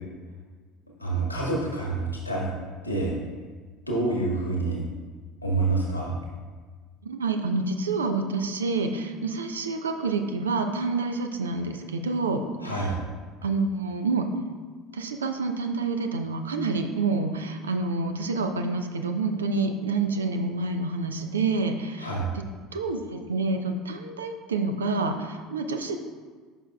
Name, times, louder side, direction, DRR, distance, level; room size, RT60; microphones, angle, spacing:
voice 1, 1.0-2.5 2.8-3.1 3.9-4.8 5.4-6.1 12.6-13.0 22.0-22.3, right 3 dB, 90° left, -4 dB, 1.6 m, -27 dB
voice 2, 7.0-12.4 12.7-12.9 13.4-14.3 14.9-22.4 22.7-26.0, right 3 dB, 75° right, 6 dB, 0.5 m, -28 dB
9.9 x 5.9 x 2.3 m, 1.5 s
figure-of-eight pair, 65°, 0 cm